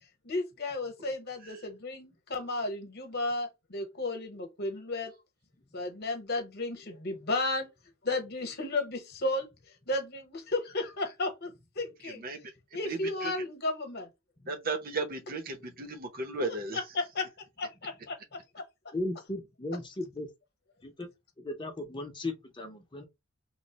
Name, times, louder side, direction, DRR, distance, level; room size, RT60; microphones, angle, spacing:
voice 1, 0.2-5.1 5.7-7.7 8.0-9.5 9.9-12.2 12.7-14.1 16.7-17.3 17.6-18.6, left 2 dB, 45° left, 0.9 m, -33 dB
voice 2, 12.0-12.4 12.7-13.3 14.5-16.8, right 3 dB, 40° right, 0.7 m, -35 dB
voice 3, 18.9-20.3 20.8-21.1 21.4-23.1, left 2 dB, 20° left, 0.6 m, -36 dB
3.1 x 2.0 x 4.0 m
head